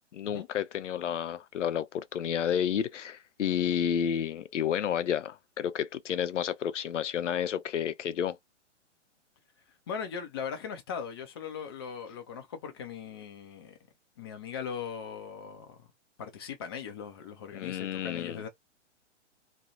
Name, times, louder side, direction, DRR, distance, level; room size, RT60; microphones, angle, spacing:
voice 1, 0.0-8.4 17.5-18.4, left 9 dB, 80° left, 0.5 m, -31 dB
voice 2, 9.9-13.8 14.2-15.9 16.2-18.5, left 7 dB, 20° left, 0.4 m, -39 dB
2.4 x 2.0 x 2.7 m
figure-of-eight pair, 125°, 36 cm